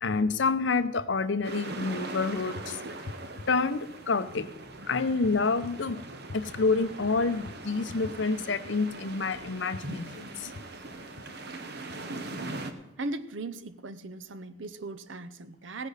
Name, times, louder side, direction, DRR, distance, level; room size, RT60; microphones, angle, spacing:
voice 1, 0.0-2.8 3.5-4.5 4.9-6.0 6.3-10.5, left 4 dB, 65° left, 13 dB, 0.7 m, -28 dB
sound 1, 1.4-12.7, right 2 dB, 55° right, 1.1 m, -41 dB
voice 2, 13.0-15.9, right 2 dB, 70° right, 13 dB, 0.8 m, -38 dB
16.5 x 10.5 x 4.1 m, 0.98 s
head